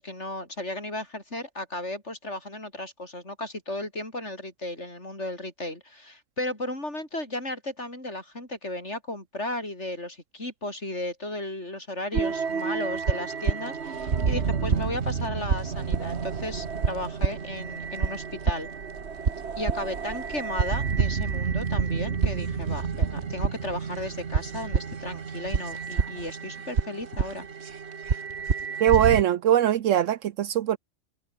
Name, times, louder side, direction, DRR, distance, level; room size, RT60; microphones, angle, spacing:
voice 1, 0.0-18.7 19.6-27.5, left 1 dB, 55° left, 8.3 m, -35 dB
sound 1, 12.1-29.2, right 6 dB, 55° right, 1.7 m, -28 dB
voice 2, 28.8-30.8, right 11 dB, 75° right, 1.0 m, -21 dB
open air
omnidirectional pair, 1.4 m